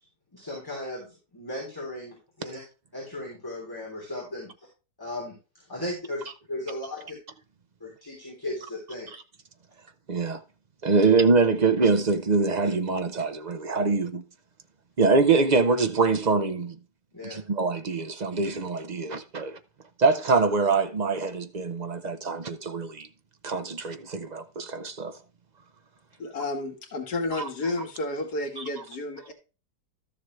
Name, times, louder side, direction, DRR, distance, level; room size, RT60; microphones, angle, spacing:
voice 1, 0.3-2.6 2.9-4.7 5.0-6.2 6.5-7.2 7.8-9.1 17.1-17.4, left 1 dB, 15° left, 3.4 m, -36 dB
voice 2, 10.1-10.4 10.8-14.2 15.0-16.8 17.2-19.6 20.0-23.1 23.4-25.2, right 4 dB, 40° right, 0.6 m, -24 dB
voice 3, 26.2-29.3, left 2 dB, 85° left, 2.2 m, -31 dB
13.0 x 7.2 x 3.2 m
omnidirectional pair, 1.7 m